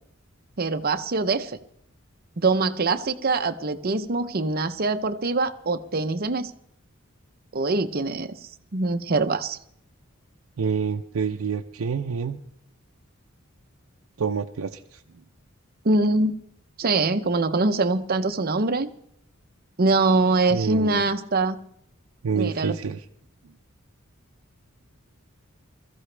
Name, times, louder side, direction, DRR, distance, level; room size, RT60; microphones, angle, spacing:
voice 1, 0.6-1.6 2.4-6.5 7.5-8.3 8.7-9.6 15.8-16.3 16.8-18.9 19.8-21.6 22.3-22.8, right 3 dB, 45° right, 9 dB, 0.7 m, -23 dB
voice 2, 10.6-12.4 14.2-15.0 20.5-21.0 22.2-23.0, right 6 dB, 80° right, 3 dB, 0.6 m, -27 dB
21.5 x 14.0 x 3.3 m, 0.71 s
head